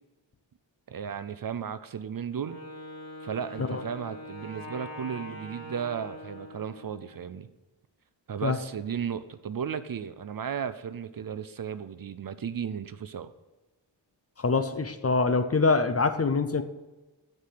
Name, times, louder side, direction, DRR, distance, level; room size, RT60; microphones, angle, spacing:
voice 1, 0.9-2.6 3.2-7.5 8.3-13.3, right 7 dB, 50° right, 12 dB, 0.5 m, -35 dB
Wind instrument woodwind instrument, 2.3-7.2, left 1 dB, 50° left, 3.1 m, -43 dB
voice 2, 14.4-16.6, left 4 dB, 30° left, 10 dB, 0.6 m, -24 dB
8.4 x 6.8 x 7.6 m, 1.1 s
wide cardioid pair, 125°, 47 cm